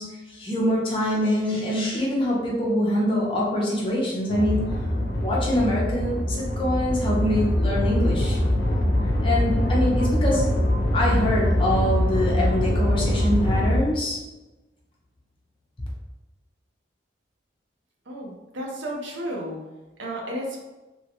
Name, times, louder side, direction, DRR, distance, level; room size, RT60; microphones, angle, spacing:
voice 1, 0.0-4.9 5.2-8.4 9.2-10.6 10.9-14.2, left 1 dB, 25° left, -4 dB, 0.6 m, -24 dB
sound 1, 4.3-13.8, left 1 dB, 65° left, 0.6 m, -23 dB
voice 2, 18.1-19.6 20.0-20.6, equal, 75° right, -2 dB, 0.7 m, -32 dB
2.9 x 2.3 x 2.8 m, 1.1 s
head